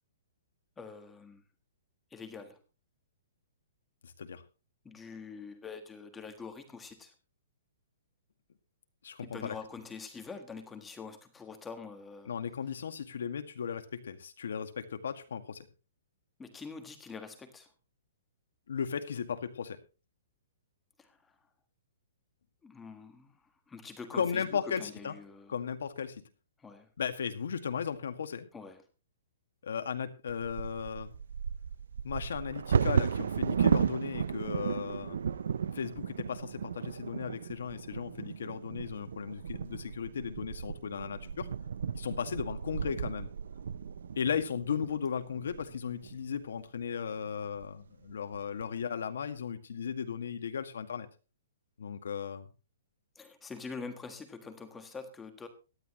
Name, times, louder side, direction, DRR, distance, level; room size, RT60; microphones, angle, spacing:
voice 1, 0.8-1.4 2.1-2.6 4.8-7.1 9.2-12.3 16.4-17.7 21.0-21.3 22.6-23.4 23.7-25.5 26.6-26.9 28.5-28.8 53.1-55.5, left 5 dB, 5° left, 6 dB, 1.5 m, -45 dB
voice 2, 4.0-4.4 9.0-9.5 12.3-15.7 18.7-19.8 24.1-25.1 25.5-26.2 27.0-28.5 29.6-31.1 32.0-35.2 35.7-41.5 41.9-43.3 44.2-51.1 51.8-52.5, left 7 dB, 75° left, 8 dB, 1.9 m, -36 dB
Bird vocalization bird call bird song / Wind / Thunder, 30.3-46.2 46.8-46.9 47.2-47.6 48.1-48.6, right 7 dB, 70° right, 0.5 m, -34 dB
18.0 x 12.5 x 3.1 m, 0.32 s
hypercardioid pair, 175°, 0 cm